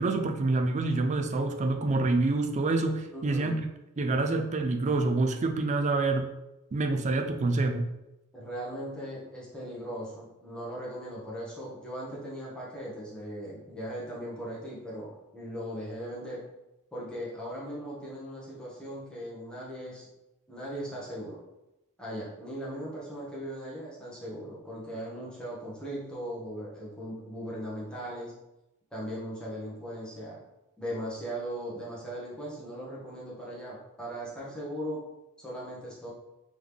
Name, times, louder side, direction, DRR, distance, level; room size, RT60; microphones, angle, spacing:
voice 1, 0.0-3.7 4.0-6.3 6.7-7.9, right 3 dB, 30° right, 5 dB, 0.4 m, -27 dB
voice 2, 3.1-3.6 8.3-16.4 16.9-20.1 20.5-21.4 22.0-28.3 28.9-30.4 30.8-35.0 35.4-36.1, equal, 5° left, -7 dB, 1.2 m, -38 dB
3.7 x 3.1 x 3.5 m, 0.95 s
head